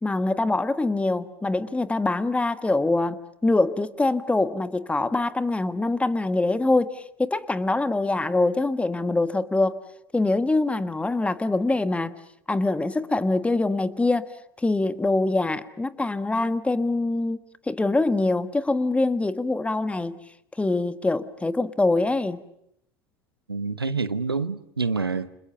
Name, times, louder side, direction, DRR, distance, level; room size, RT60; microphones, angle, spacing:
voice 1, 0.0-9.8 10.1-12.1 12.5-14.3 14.6-17.4 17.7-20.2 20.6-22.4, left 2 dB, 10° left, 1.5 m, -24 dB
voice 2, 23.5-25.3, right 4 dB, 85° right, 1.0 m, -27 dB
29.5 x 27.0 x 7.0 m
figure-of-eight pair, 75°, 12 cm